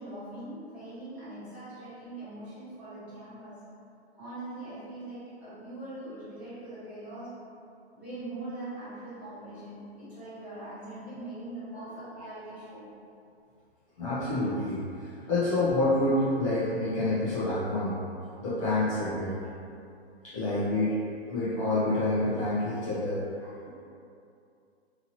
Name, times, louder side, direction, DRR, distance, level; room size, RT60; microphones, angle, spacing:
voice 1, 0.0-3.7 4.1-7.3 7.9-12.9 15.2-15.3, right 2 dB, 5° right, -18 dB, 1.1 m, -42 dB
voice 2, 14.0-18.0 18.4-19.4 20.2-21.0 21.3-23.7, left 2 dB, 30° left, -12 dB, 0.6 m, -28 dB
2.9 x 2.8 x 2.7 m, 2.5 s
hypercardioid pair, 160°, 33 cm